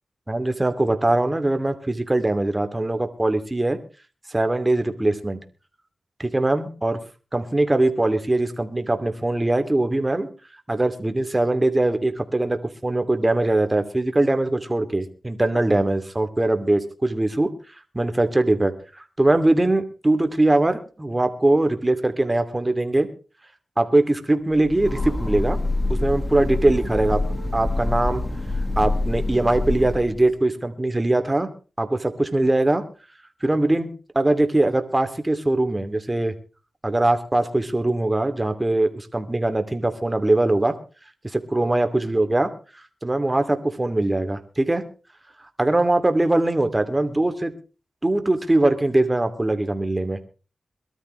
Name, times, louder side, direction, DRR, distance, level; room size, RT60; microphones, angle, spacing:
voice 1, 0.3-3.8 4.3-5.4 6.2-7.0 7.3-10.3 10.7-17.5 17.9-23.1 23.8-25.6 26.0-27.2 27.5-28.2 28.8-31.5 31.8-32.9 33.4-33.9 34.1-36.3 36.8-40.8 41.2-42.5 43.0-44.8 45.6-47.5 48.0-50.2, right 2 dB, 20° right, 8 dB, 2.6 m, -21 dB
Train, 24.5-30.3, left 2 dB, 25° left, 7.6 m, -26 dB
23.0 x 13.0 x 3.2 m, 0.34 s
cardioid pair, 60°, 0 cm